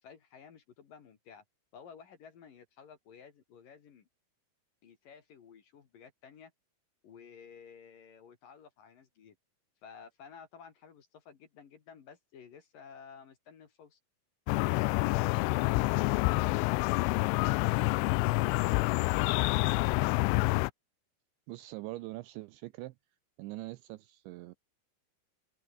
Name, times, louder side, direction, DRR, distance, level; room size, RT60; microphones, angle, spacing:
voice 1, 0.0-1.4 1.7-4.1 4.8-6.5 7.0-9.4 9.8-14.0, left 6 dB, 50° left, 3.2 m, -54 dB
sound 1, 14.5-20.7, left 25 dB, 90° left, 2.7 m, -27 dB
voice 2, 21.5-23.0 23.4-24.6, right 19 dB, 85° right, 2.7 m, -43 dB
omnidirectional pair, 5.9 m